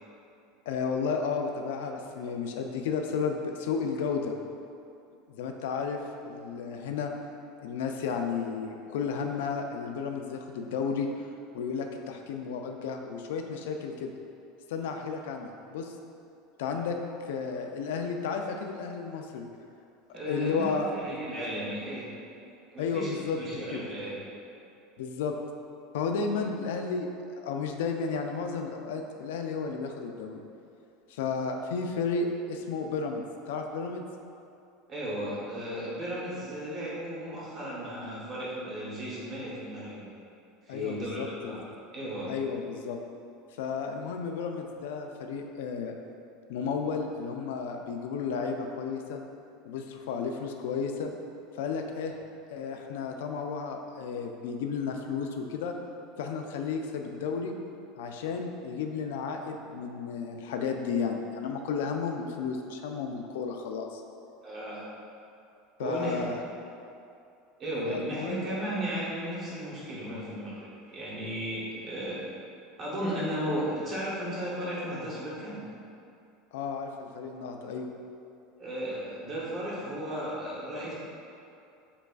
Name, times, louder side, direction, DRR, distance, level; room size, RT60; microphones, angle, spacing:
voice 1, 0.7-4.4 5.3-7.1 7.6-11.1 11.5-14.1 14.7-15.9 16.6-19.5 20.1-20.9 22.8-23.4 23.7-23.8 25.0-25.4 25.9-30.4 31.1-33.2 33.5-34.0 40.7-41.7 42.3-43.0 43.6-46.0 46.5-49.2 49.7-51.1 51.6-52.1 52.5-55.7 56.2-57.5 58.0-64.0 65.8-66.4 67.9-68.5 76.5-77.9, left 5 dB, 90° left, 4 dB, 0.3 m, -33 dB
voice 2, 20.1-22.0 22.7-24.2 34.9-40.1 40.6-41.6 41.9-42.3 64.4-64.9 65.8-66.3 67.6-72.2 72.8-75.6 78.6-80.9, equal, 25° right, -7 dB, 1.0 m, -35 dB
6.7 x 2.4 x 2.4 m, 2.6 s
supercardioid pair, 165°, 0 cm